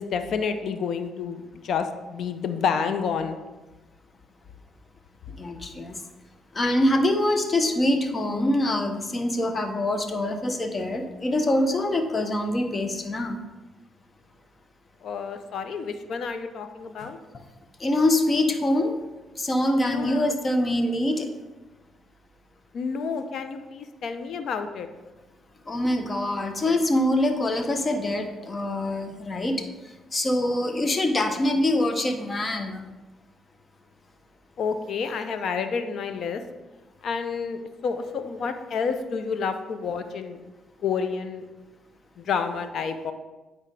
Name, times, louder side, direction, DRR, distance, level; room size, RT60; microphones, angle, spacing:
voice 1, 0.0-3.4 15.0-17.2 19.8-20.4 22.7-24.9 34.6-36.4 37.0-40.4 40.8-41.4 42.2-43.1, left 6 dB, 65° left, 8 dB, 0.6 m, -29 dB
voice 2, 5.4-5.9 6.5-13.4 17.8-19.0 19.4-21.3 25.7-29.6 30.1-32.8, left 1 dB, 30° left, 6 dB, 0.9 m, -24 dB
8.9 x 4.7 x 3.3 m, 1.1 s
cardioid pair, 90°, 0 cm